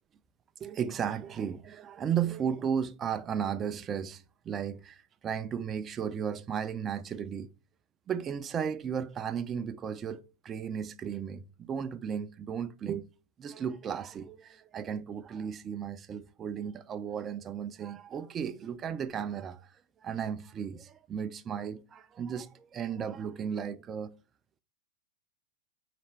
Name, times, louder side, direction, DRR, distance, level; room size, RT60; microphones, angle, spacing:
voice 1, 0.6-7.5 8.1-13.1 13.4-24.1, right 8 dB, 25° right, 0.3 m, -35 dB
4.1 x 3.3 x 3.1 m
supercardioid pair, 140°, 0 cm